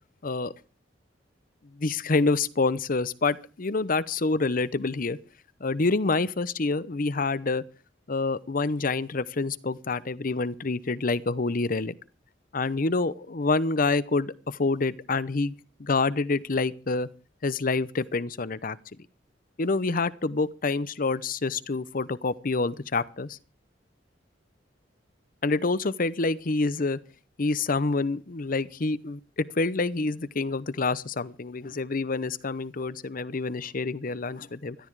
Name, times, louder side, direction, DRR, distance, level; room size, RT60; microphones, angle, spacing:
voice 1, 1.8-5.2 5.6-7.6 8.1-11.9 12.5-15.5 15.8-17.1 17.4-18.8 19.6-23.4 25.4-27.0 27.4-29.2 29.6-34.8, left 3 dB, 50° left, 18 dB, 0.8 m, -27 dB
17.5 x 13.0 x 4.7 m, 0.36 s
head